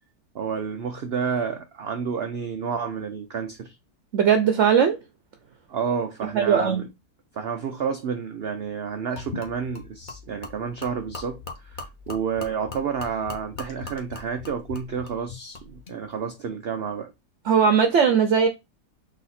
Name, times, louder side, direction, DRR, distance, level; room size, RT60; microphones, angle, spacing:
voice 1, 0.3-3.8 5.7-6.8 7.3-17.1, right 6 dB, 85° right, 0.5 m, -30 dB
voice 2, 4.1-5.0 6.3-6.8 17.5-18.5, right 7 dB, 60° right, 0.8 m, -19 dB
Gurgling / Liquid, 9.2-16.0, left 3 dB, 35° left, 1.0 m, -40 dB
4.1 x 2.8 x 4.1 m
omnidirectional pair, 1.8 m